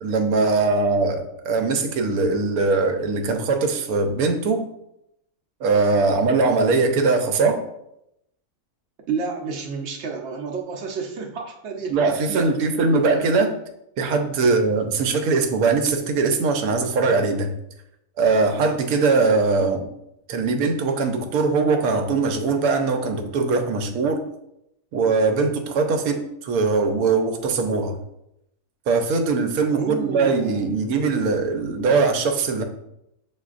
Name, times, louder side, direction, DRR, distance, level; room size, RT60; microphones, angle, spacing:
voice 1, 0.0-4.6 5.6-7.6 11.9-13.5 14.0-17.5 18.2-19.9 20.3-24.2 24.9-28.0 28.9-32.6, right 4 dB, 85° right, 6 dB, 1.1 m, -21 dB
voice 2, 9.1-12.5 14.4-14.7 29.7-30.7, right 5 dB, 60° right, 2 dB, 0.8 m, -30 dB
7.0 x 2.5 x 2.4 m, 0.81 s
omnidirectional pair, 1.5 m